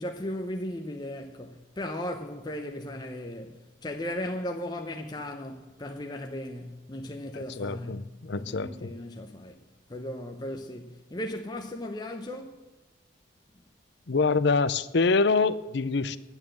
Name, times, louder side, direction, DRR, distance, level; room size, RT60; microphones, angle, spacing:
voice 1, 0.0-12.6, left 1 dB, 20° left, 0.7 m, -37 dB
voice 2, 7.3-8.9 14.1-16.2, left 4 dB, 55° left, 0.6 m, -25 dB
11.0 x 9.0 x 7.8 m
head